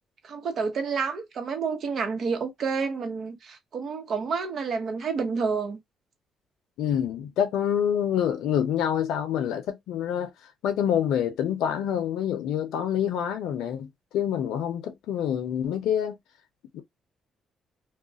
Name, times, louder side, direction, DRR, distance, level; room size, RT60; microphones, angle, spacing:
voice 1, 0.2-5.8, right 5 dB, 55° right, 0.9 m, -29 dB
voice 2, 6.8-10.3 10.6-16.2 16.7-16.8, left 9 dB, 85° left, 0.6 m, -27 dB
2.4 x 2.1 x 3.8 m
cardioid pair, 90°, 0 cm